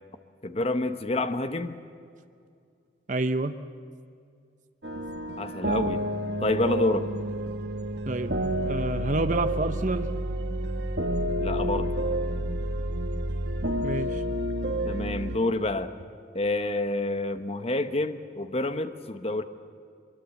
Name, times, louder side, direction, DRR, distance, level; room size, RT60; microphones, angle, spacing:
voice 1, 0.4-1.8 5.4-6.1 6.4-7.1 11.4-11.9 14.8-15.9 16.3-19.4, left 2 dB, 35° left, 9 dB, 1.0 m, -28 dB
voice 2, 3.1-3.5 8.1-10.1 13.8-14.2, right 2 dB, 45° right, 9 dB, 0.9 m, -28 dB
sound 1, 4.8-15.4, right 1 dB, 65° right, 1.5 m, -29 dB
23.5 x 23.0 x 8.3 m, 2.3 s
head